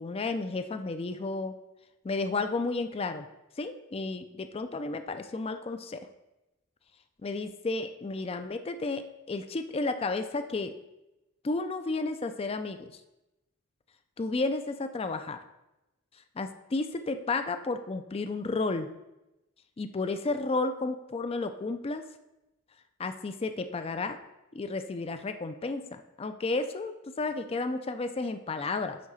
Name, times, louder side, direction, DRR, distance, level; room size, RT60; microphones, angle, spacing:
voice 1, 0.0-1.5 2.0-3.3 3.6-6.0 7.2-9.0 9.3-10.7 11.4-12.9 14.2-15.4 16.4-18.9 19.8-22.0 23.0-24.2 24.5-29.0, left 3 dB, 25° left, 9 dB, 0.4 m, -32 dB
9.4 x 3.7 x 5.6 m, 0.95 s
head